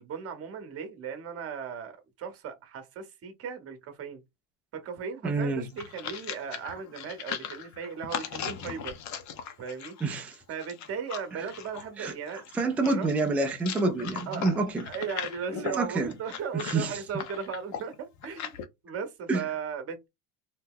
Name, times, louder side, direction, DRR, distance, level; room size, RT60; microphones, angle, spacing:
voice 1, 0.0-4.2 4.7-9.0 9.6-10.0 10.5-12.4 12.8-13.1 14.3-18.6 18.8-20.1, right 6 dB, 35° right, 0.9 m, -37 dB
voice 2, 5.2-5.7 10.0-10.3 12.0-12.1 12.5-14.8 15.5-16.1 16.7-16.9 19.3-19.4, right 3 dB, 5° right, 0.3 m, -27 dB
sound 1, 5.5-18.6, left 8 dB, 40° left, 0.7 m, -39 dB
2.9 x 2.0 x 3.6 m
supercardioid pair, 130°, 43 cm